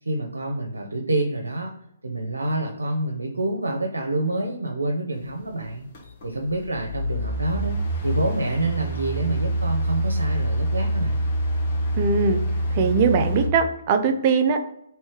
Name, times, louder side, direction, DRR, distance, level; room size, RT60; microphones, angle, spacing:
voice 1, 0.0-1.8 2.0-5.9 6.2-11.2, right 2 dB, 90° right, 2 dB, 0.7 m, -27 dB
sound 1, 5.9-6.2 6.6-13.5, right 1 dB, 45° left, 1.4 m, -25 dB
voice 2, 11.9-12.4 12.7-14.6, right 5 dB, 35° right, 6 dB, 0.5 m, -21 dB
3.2 x 3.2 x 4.7 m, 0.75 s
figure-of-eight pair, 140°, 0 cm